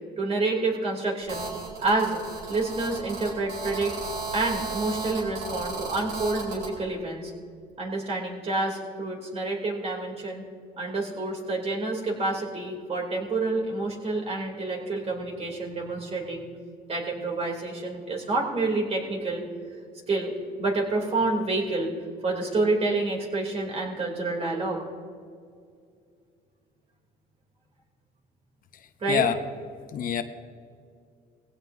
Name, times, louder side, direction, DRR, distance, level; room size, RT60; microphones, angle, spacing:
voice 1, 0.2-1.5 1.8-2.2 2.5-3.9 4.3-7.3 7.8-10.4 10.8-16.5 16.9-19.4 20.1-20.3 20.6-21.9 22.2-24.8 29.0-29.2, right 2 dB, 35° right, 0 dB, 3.0 m, -28 dB
Telephone, 1.3-6.7, right 3 dB, 75° right, 4.5 m, -35 dB
voice 2, 29.1-29.4 29.9-30.2, left 8 dB, 55° left, 9 dB, 0.8 m, -25 dB
20.0 x 16.5 x 2.7 m, 2.2 s
cardioid pair, 110°, 17 cm